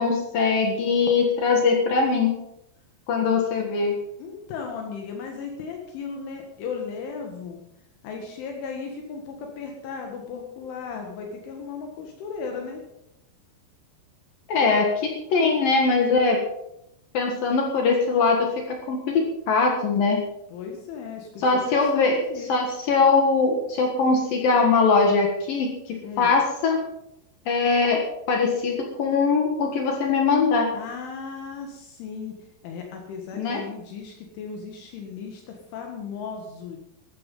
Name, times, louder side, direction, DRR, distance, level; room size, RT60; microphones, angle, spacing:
voice 1, 0.0-2.4 3.1-4.0 14.5-16.4 17.1-20.2 21.4-26.8 27.5-28.0 28.3-30.7 33.3-33.6, left 4 dB, 60° left, 2 dB, 2.7 m, -21 dB
voice 2, 4.2-7.6 8.0-12.8 20.5-22.6 26.0-26.4 30.7-32.3 32.6-36.8, left 5 dB, 75° left, 2 dB, 4.0 m, -36 dB
14.0 x 14.0 x 5.4 m, 0.83 s
omnidirectional pair, 5.7 m